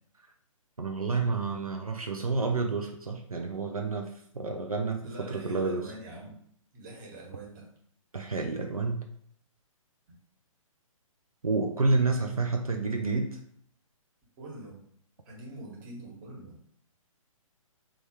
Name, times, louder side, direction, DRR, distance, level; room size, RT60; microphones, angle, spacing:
voice 1, 0.8-5.9 8.1-9.0 11.4-13.4, right 3 dB, 85° right, 3 dB, 0.6 m, -29 dB
voice 2, 5.0-6.3 6.7-7.6 14.4-14.8 15.2-16.5, right 2 dB, 35° right, -2 dB, 1.6 m, -44 dB
3.7 x 3.0 x 4.6 m, 0.66 s
figure-of-eight pair, 130°, 18 cm